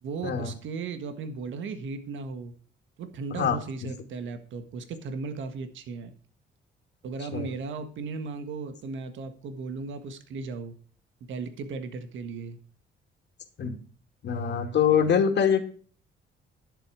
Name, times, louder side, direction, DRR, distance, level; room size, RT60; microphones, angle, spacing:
voice 1, 0.0-2.5 3.0-6.1 7.0-10.7 11.3-12.6, right 4 dB, 75° right, 9 dB, 1.6 m, -36 dB
voice 2, 3.4-3.9 7.3-7.5 13.6-13.7 14.2-15.7, left 7 dB, 60° left, 5 dB, 2.4 m, -24 dB
11.0 x 7.7 x 5.0 m, 0.44 s
cardioid pair, 90°, 20 cm